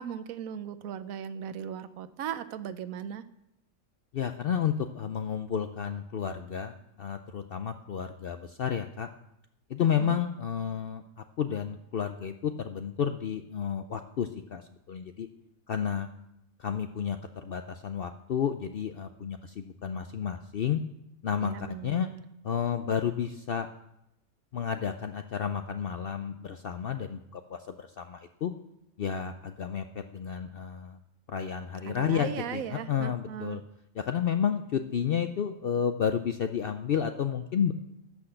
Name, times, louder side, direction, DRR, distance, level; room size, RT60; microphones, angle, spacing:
voice 1, 0.0-3.2 9.8-10.2 21.4-22.2 31.8-33.6, right 8 dB, 75° right, 13 dB, 1.1 m, -38 dB
voice 2, 4.1-9.1 9.7-11.0 11.4-14.6 14.9-15.3 15.7-16.1 16.6-20.8 21.2-21.5 21.8-22.1 22.4-23.7 24.5-28.5 29.0-31.0 31.3-32.6 32.9-33.6 34.0-37.7, left 8 dB, 65° left, 8 dB, 0.6 m, -31 dB
12.0 x 6.1 x 7.8 m, 0.84 s
omnidirectional pair, 1.5 m